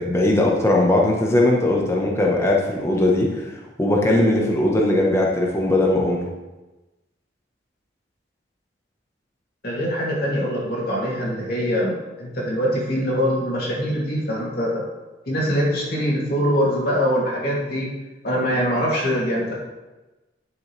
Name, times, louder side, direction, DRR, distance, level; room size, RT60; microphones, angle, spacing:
voice 1, 0.0-3.4 3.8-6.2, left 1 dB, 15° left, -2 dB, 1.2 m, -19 dB
voice 2, 9.6-14.8 15.3-17.9 18.2-19.5, equal, 55° left, -4 dB, 2.8 m, -23 dB
10.5 x 7.2 x 3.4 m, 1.1 s
head